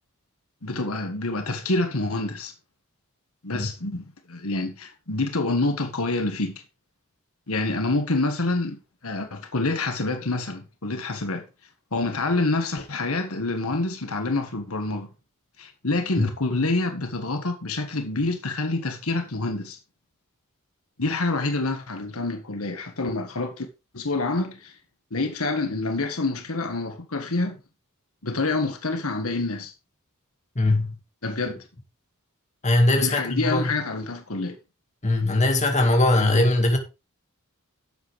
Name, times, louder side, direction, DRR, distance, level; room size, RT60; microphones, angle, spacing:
voice 1, 0.6-2.5 3.4-6.6 7.5-11.4 11.9-15.1 15.6-19.8 21.0-23.7 23.9-24.7 25.1-27.6 28.2-29.7 31.2-31.6 33.0-34.6, left 2 dB, 75° left, 1.6 m, -27 dB
voice 2, 30.6-31.0 32.6-33.7 35.0-36.8, left 2 dB, 30° left, 2.0 m, -21 dB
11.0 x 8.0 x 3.4 m
head